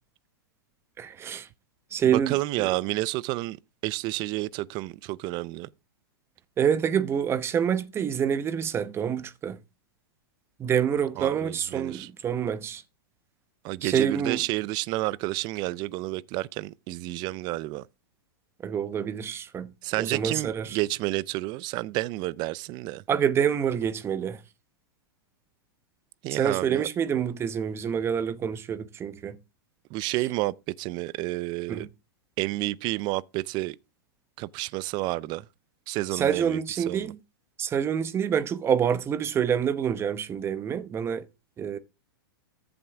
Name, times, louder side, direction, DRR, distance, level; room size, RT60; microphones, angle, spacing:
voice 1, 1.0-1.5 1.9-2.7 6.6-9.6 10.6-12.8 13.8-14.4 18.6-20.8 23.1-24.4 26.3-29.4 31.7-31.9 36.1-37.2 37.6-41.3 41.6-41.8, right 8 dB, 20° right, 0.9 m, -27 dB
voice 2, 2.1-3.6 3.8-5.7 11.2-12.1 13.6-17.9 19.8-23.0 26.2-26.8 29.9-31.9 32.4-33.8 34.4-35.4 35.9-37.1, right 19 dB, 35° right, 0.5 m, -30 dB
14.0 x 7.8 x 3.5 m
hypercardioid pair, 135°, 12 cm